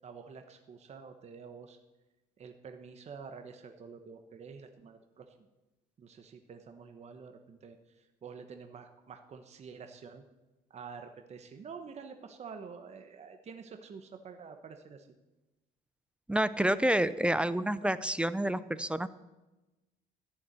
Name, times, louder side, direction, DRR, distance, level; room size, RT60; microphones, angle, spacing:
voice 1, 0.0-1.8 2.4-5.3 6.0-10.2 10.7-15.1, right 5 dB, 40° right, 6 dB, 1.2 m, -48 dB
voice 2, 16.3-19.1, right 1 dB, 5° right, 15 dB, 0.5 m, -28 dB
13.5 x 7.2 x 9.3 m, 1.1 s
cardioid pair, 110°, 17 cm